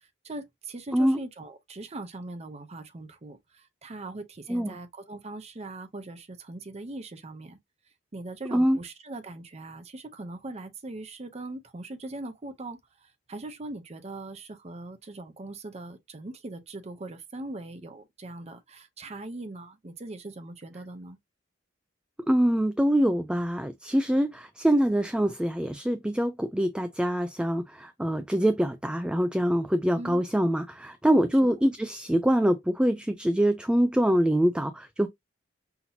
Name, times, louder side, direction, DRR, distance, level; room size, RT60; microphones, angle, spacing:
voice 1, 0.2-7.6 8.1-21.2 29.9-30.2, right 2 dB, 35° right, 0.7 m, -40 dB
voice 2, 22.3-35.1, equal, 5° right, 0.3 m, -24 dB
5.8 x 2.8 x 2.7 m
head